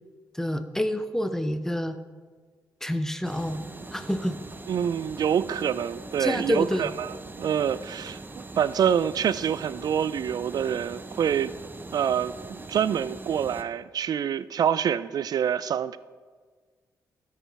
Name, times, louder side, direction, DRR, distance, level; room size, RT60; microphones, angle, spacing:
voice 1, 0.3-2.0 2.8-3.6 3.9-4.4 6.2-6.9, equal, 5° left, 9 dB, 0.7 m, -28 dB
sound 1, 3.2-13.6, right 2 dB, 25° right, 0.8 m, -41 dB
voice 2, 4.7-8.2 8.6-11.5 11.9-16.0, right 8 dB, 55° right, 16 dB, 0.3 m, -26 dB
13.5 x 4.9 x 3.4 m, 1.5 s
hypercardioid pair, 45°, 8 cm